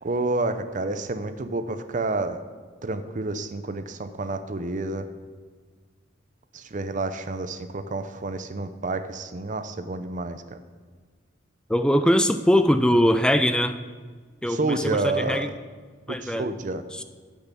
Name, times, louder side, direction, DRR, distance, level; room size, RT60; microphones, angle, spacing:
voice 1, 0.0-2.4 2.8-5.1 6.5-10.6 14.5-15.5 16.1-16.8, right 2 dB, 40° right, 10 dB, 0.6 m, -29 dB
voice 2, 11.7-13.8 14.4-15.5 16.1-16.5 16.9-17.0, equal, 5° left, 10 dB, 0.3 m, -21 dB
8.7 x 8.3 x 6.8 m, 1.5 s
head